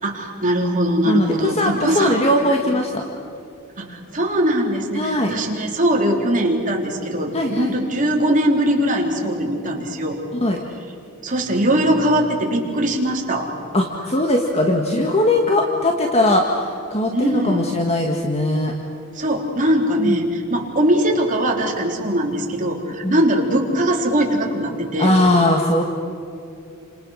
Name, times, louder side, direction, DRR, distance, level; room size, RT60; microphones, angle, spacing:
voice 1, 0.0-2.4 3.8-10.2 11.2-13.5 17.1-17.7 19.1-25.1, right 1 dB, 40° right, 0 dB, 3.7 m, -21 dB
voice 2, 1.1-3.0 4.9-5.3 7.3-7.7 10.4-10.6 13.7-18.7 20.0-20.2 23.0-23.2 25.0-25.8, left 1 dB, 30° left, 2 dB, 1.8 m, -19 dB
30.0 x 27.0 x 6.5 m, 2.6 s
head